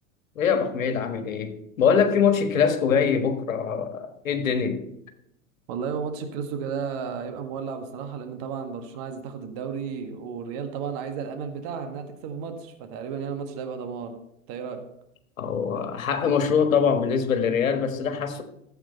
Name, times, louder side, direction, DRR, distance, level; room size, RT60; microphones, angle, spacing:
voice 1, 0.3-4.8 15.4-18.4, left 6 dB, 75° left, 1.6 m, -23 dB
voice 2, 5.7-14.2 14.5-14.9, right 6 dB, 45° right, 1.6 m, -33 dB
13.5 x 8.0 x 4.3 m
hypercardioid pair, 100°, 40 cm